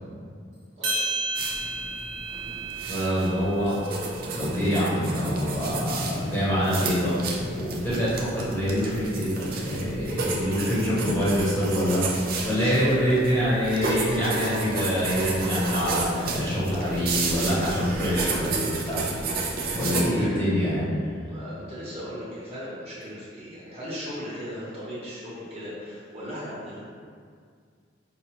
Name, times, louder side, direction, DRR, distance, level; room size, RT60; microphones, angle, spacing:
sound 1, 0.8-5.2, right 2 dB, 80° right, 1.0 m, -33 dB
sound 2, 1.3-20.0, right 3 dB, 55° right, 0.5 m, -32 dB
voice 1, 2.9-3.8 4.2-12.0 12.4-19.0 19.3-19.4 19.7-20.9, equal, 10° left, -11 dB, 0.9 m, -25 dB
voice 2, 12.3-13.1 20.2-20.4 21.2-26.9, equal, 35° right, -9 dB, 1.1 m, -36 dB
Keyboard (musical), 13.8-16.7, left 2 dB, 50° left, 0.5 m, -41 dB
4.8 x 2.3 x 2.9 m, 2.1 s
head